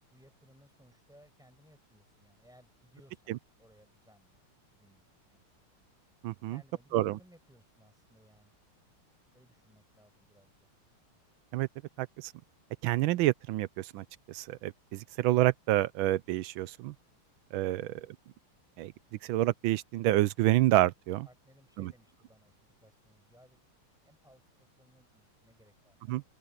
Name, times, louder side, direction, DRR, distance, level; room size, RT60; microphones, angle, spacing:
voice 1, 0.1-3.2 3.6-5.4 6.5-8.5 9.3-10.7 21.2-26.2, equal, ahead, 7.0 m, -62 dB
voice 2, 6.2-6.6 6.9-7.2 11.5-11.7 12.0-12.3 12.8-16.9 17.5-18.1 18.8-18.9 19.2-21.3 21.8-21.9 26.1-26.2, right 15 dB, 75° right, 1.3 m, -28 dB
open air
omnidirectional pair, 2.4 m